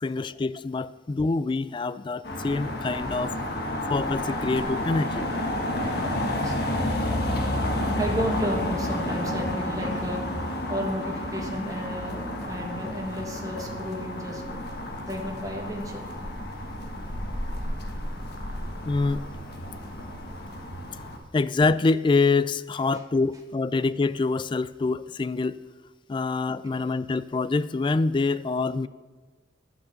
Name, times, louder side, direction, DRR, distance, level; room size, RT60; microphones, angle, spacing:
voice 1, 0.0-3.3 3.9-5.3 18.9-19.3 21.3-25.6 26.1-28.9, left 3 dB, 25° left, 0.3 m, -25 dB
sound 1, 2.2-21.2, left 1 dB, 60° left, 1.4 m, -30 dB
voice 2, 6.0-7.0 8.0-10.2 10.7-14.6 15.1-16.1 20.2-20.3 22.9-23.0, equal, 20° right, 1.7 m, -33 dB
11.5 x 6.7 x 7.0 m
head